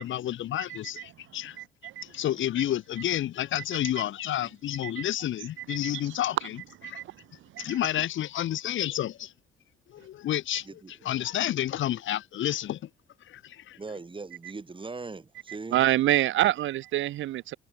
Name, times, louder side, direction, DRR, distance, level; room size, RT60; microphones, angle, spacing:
voice 1, 0.0-1.6 2.0-6.6 6.9-7.0 7.6-9.3 9.9-12.9 13.2-13.8, left 12 dB, 75° left, 4.8 m, -30 dB
voice 2, 1.6-2.0 6.8-7.0 7.5-7.6 15.7-17.6, right 14 dB, 75° right, 0.7 m, -26 dB
voice 3, 13.8-15.8, right 3 dB, 25° right, 4.3 m, -40 dB
cardioid pair, 90°, 20 cm